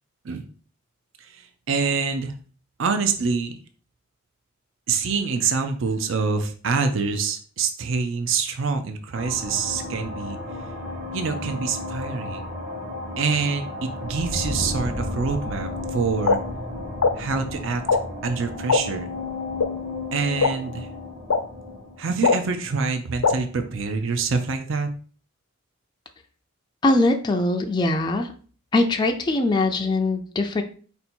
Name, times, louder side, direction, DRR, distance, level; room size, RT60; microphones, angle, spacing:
voice 1, 1.2-2.3 2.8-3.5 4.9-10.4 11.1-12.4 13.2-16.4 17.2-17.8 18.2-19.1 20.1-20.9 22.0-24.9, right 5 dB, 55° right, 7 dB, 0.5 m, -26 dB
sound 1, 9.1-23.3, left 2 dB, 30° right, 1.1 m, -33 dB
sound 2, 16.3-16.4 17.0-17.1 17.9-18.0 18.7-18.8 19.6-19.7 20.4-20.5 21.3-21.4 22.2-22.4 23.2-23.3, left 4 dB, 80° left, 0.5 m, -18 dB
voice 2, 26.8-28.3 28.7-30.6, left 2 dB, 20° left, 4 dB, 0.3 m, -21 dB
4.5 x 2.7 x 4.2 m, 0.42 s
head